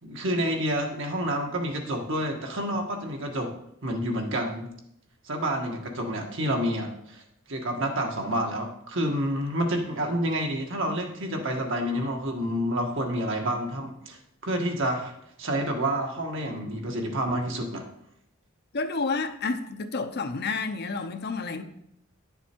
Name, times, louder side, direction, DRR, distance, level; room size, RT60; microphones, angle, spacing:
voice 1, 0.0-3.5 3.8-4.7 5.2-7.2 7.5-15.1 15.4-17.8, equal, 65° right, 1.6 m, -29 dB
voice 2, 18.7-21.6, left 4 dB, 55° left, 0.7 m, -30 dB
10.5 x 6.8 x 4.5 m
head